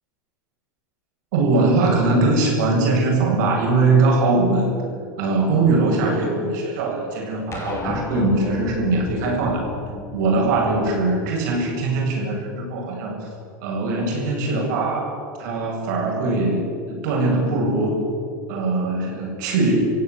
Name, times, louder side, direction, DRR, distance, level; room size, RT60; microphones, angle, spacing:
voice 1, 1.3-4.7 5.2-9.7 10.1-13.3 13.6-18.0 18.5-19.8, right 3 dB, 70° right, 0 dB, 7.8 m, -21 dB
sound 1, 7.5-12.2, left 3 dB, 30° left, 4.9 m, -33 dB
27.5 x 15.5 x 8.3 m, 2.4 s
supercardioid pair, 120°, 10 cm